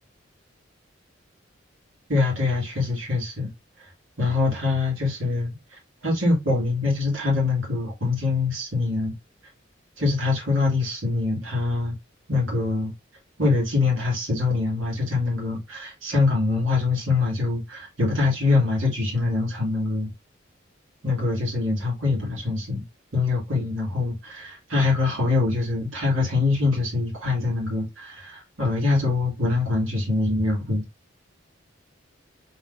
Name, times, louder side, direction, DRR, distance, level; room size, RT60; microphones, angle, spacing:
voice 1, 2.1-3.5 4.2-5.5 6.0-9.1 10.0-11.9 12.3-12.9 13.4-20.1 21.0-22.8 23.1-30.8, left 3 dB, 85° right, 2.4 m, -24 dB
4.0 x 4.0 x 2.6 m
head